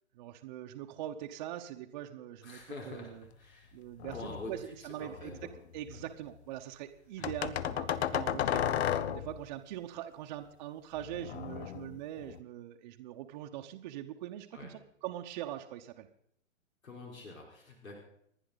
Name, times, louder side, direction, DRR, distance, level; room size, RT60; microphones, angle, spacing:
voice 1, 0.1-2.6 2.8-3.2 3.7-4.6 4.8-5.4 5.7-16.1, right 12 dB, 35° right, 3 dB, 1.0 m, -42 dB
voice 2, 2.4-3.7 4.1-5.5 5.9-6.0 7.2-7.3 14.5-14.7 16.8-17.9, left 2 dB, 85° left, 0 dB, 4.7 m, -46 dB
sound 1, 4.0-4.6 5.1-6.1 7.2-9.5 11.0-12.4, left 10 dB, 55° left, 0.9 m, -34 dB
30.0 x 10.0 x 4.0 m, 0.68 s
hypercardioid pair, 140°, 40 cm